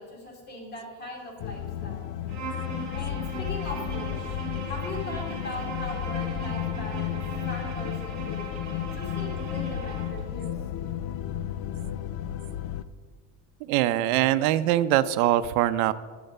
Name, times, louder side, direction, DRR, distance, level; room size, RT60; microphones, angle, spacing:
voice 1, 0.0-2.1 2.9-4.4 4.7-7.2 7.5-8.4 8.9-10.5, left 1 dB, 25° left, -1 dB, 2.7 m, -39 dB
sound 1, 1.4-12.8, left 11 dB, 50° left, 0.5 m, -33 dB
Bowed string instrument, 2.3-10.2, right 3 dB, 40° right, 2.8 m, -38 dB
voice 2, 13.7-15.9, right 13 dB, 75° right, 14 dB, 0.7 m, -22 dB
10.0 x 7.7 x 6.5 m, 1.5 s
cardioid pair, 160°, 42 cm